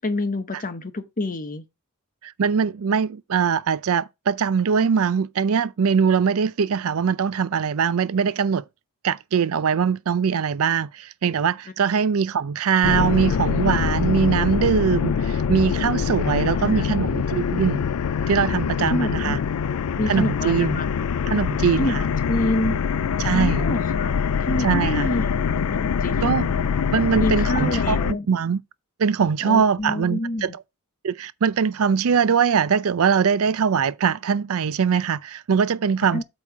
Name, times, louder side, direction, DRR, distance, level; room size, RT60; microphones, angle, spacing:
voice 1, 0.0-1.7 16.3-16.9 18.9-19.4 20.0-20.9 21.8-21.9 22.3-22.8 23.3-26.4 27.2-28.3 29.4-30.5 36.1-36.2, left 1 dB, 40° left, 1.0 m, -28 dB
voice 2, 2.2-8.6 9.0-17.8 18.3-19.4 20.1-20.8 21.3-22.0 23.2-23.7 24.6-25.1 26.2-26.5 26.9-28.0 28.3-28.6 29.0-30.5 31.0-36.2, right 6 dB, 70° right, 0.5 m, -22 dB
sound 1, 12.8-28.1, left 6 dB, 75° left, 0.4 m, -24 dB
8.3 x 3.0 x 5.9 m
head